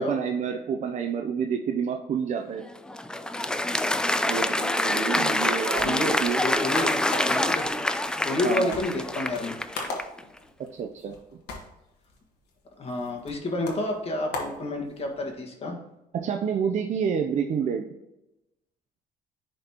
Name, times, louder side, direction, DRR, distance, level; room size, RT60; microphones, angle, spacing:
voice 1, 0.0-2.6 4.3-6.4 8.4-8.7 10.7-11.2 16.1-17.9, right 7 dB, 45° right, 3 dB, 0.5 m, -28 dB
Applause, 2.6-10.2, left 1 dB, 5° left, 0.3 m, -26 dB
sound 1, 5.4-15.3, left 3 dB, 75° left, 1.6 m, -40 dB
voice 2, 5.8-6.1 6.4-7.0 7.3-7.7 8.2-9.6 12.8-15.8, left 2 dB, 35° left, 1 dB, 1.7 m, -29 dB
11.0 x 4.1 x 2.9 m, 0.93 s
cardioid pair, 110°, 17 cm